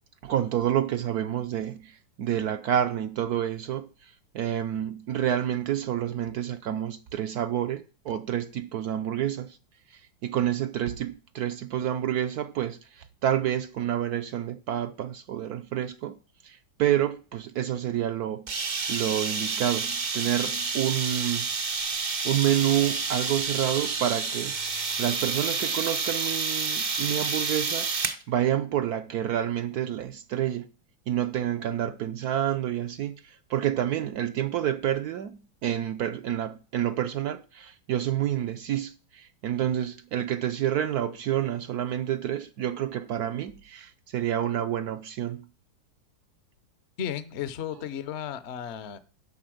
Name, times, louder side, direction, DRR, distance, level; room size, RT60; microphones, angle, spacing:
voice 1, 0.2-9.6 9.9-16.2 16.4-18.5 18.9-21.5 22.2-24.5 25.0-27.9 28.3-30.7 31.1-45.5, right 11 dB, 65° right, 1.0 m, -28 dB
sound 1, 18.5-28.2, right 4 dB, 50° right, 0.5 m, -29 dB
voice 2, 47.0-49.0, left 9 dB, 55° left, 0.8 m, -34 dB
11.0 x 4.1 x 7.7 m
omnidirectional pair, 2.0 m